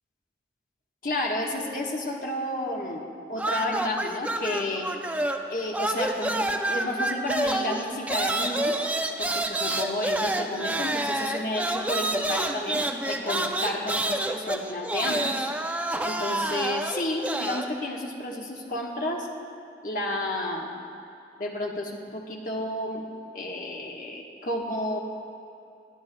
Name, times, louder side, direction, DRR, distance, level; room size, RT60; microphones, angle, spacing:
voice 1, 1.0-3.0 3.3-4.9 5.5-8.9 9.2-15.5 16.0-19.3 19.8-20.7 21.4-23.1 23.3-25.0, left 1 dB, 50° left, 0 dB, 1.2 m, -31 dB
sound 1, 3.4-5.5 5.7-17.7, right 1 dB, 10° right, 0.3 m, -28 dB
22.5 x 10.0 x 2.2 m, 2.8 s
head